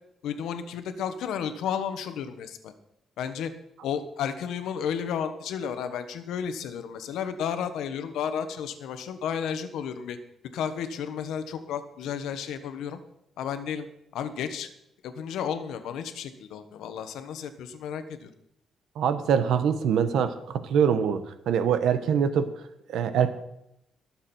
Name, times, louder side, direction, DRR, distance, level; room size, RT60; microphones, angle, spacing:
voice 1, 0.2-2.7 3.2-3.5 3.8-10.2 10.5-13.0 13.4-13.9 14.1-14.7 15.0-18.3, left 8 dB, 85° left, 9 dB, 1.3 m, -32 dB
voice 2, 19.0-22.5 22.9-23.3, right 7 dB, 70° right, 11 dB, 1.0 m, -24 dB
21.0 x 7.4 x 4.4 m, 0.81 s
cardioid pair, 180°, 0 cm